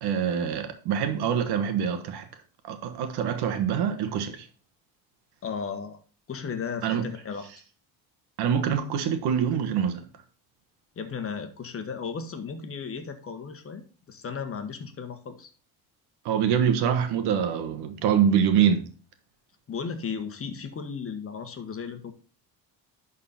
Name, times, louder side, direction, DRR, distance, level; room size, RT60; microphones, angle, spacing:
voice 1, 0.0-2.3 2.6-4.5 6.8-7.0 8.4-10.1 16.2-18.9, right 8 dB, 75° right, 1.4 m, -25 dB
voice 2, 5.4-6.0 6.3-7.5 10.9-15.5 19.7-22.1, left 6 dB, 35° left, 1.3 m, -35 dB
11.0 x 4.2 x 4.2 m
cardioid pair, 110°, 40 cm